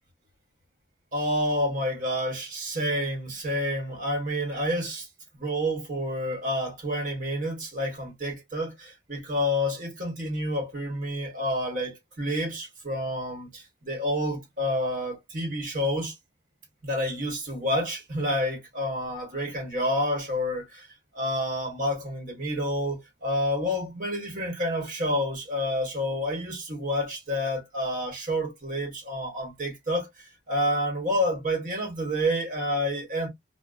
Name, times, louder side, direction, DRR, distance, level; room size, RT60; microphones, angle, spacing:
voice 1, 1.1-5.1 5.4-16.1 16.8-20.9 21.1-33.3, equal, 45° right, 1.2 m, -29 dB
2.6 x 2.1 x 2.2 m
head